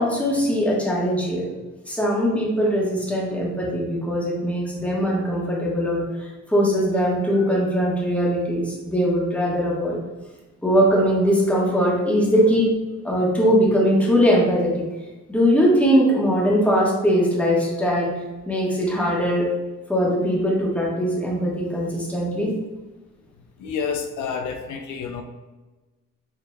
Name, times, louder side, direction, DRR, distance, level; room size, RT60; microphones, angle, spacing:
voice 1, 0.0-1.5 1.9-10.0 10.6-12.7 13.0-14.8 15.3-18.1 18.5-19.5 19.9-22.5, equal, 5° left, -4 dB, 1.2 m, -21 dB
voice 2, 23.6-25.2, left 6 dB, 75° left, 5 dB, 0.5 m, -29 dB
5.1 x 3.2 x 2.2 m, 1.2 s
cardioid pair, 90°, 30 cm